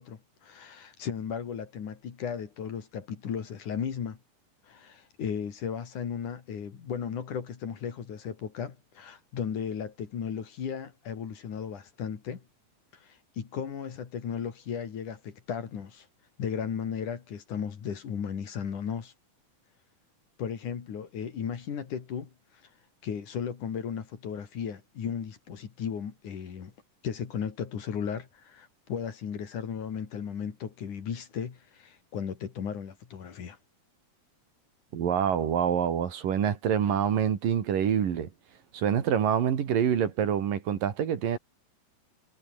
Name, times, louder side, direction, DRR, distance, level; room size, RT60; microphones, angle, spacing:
voice 1, 0.0-4.2 4.7-12.4 12.9-16.1 16.4-19.1 20.4-22.3 23.0-26.7 27.0-33.6, left 7 dB, 60° left, 4.0 m, -35 dB
voice 2, 34.9-38.3 38.7-41.4, right 8 dB, 70° right, 4.0 m, -26 dB
omnidirectional pair, 4.1 m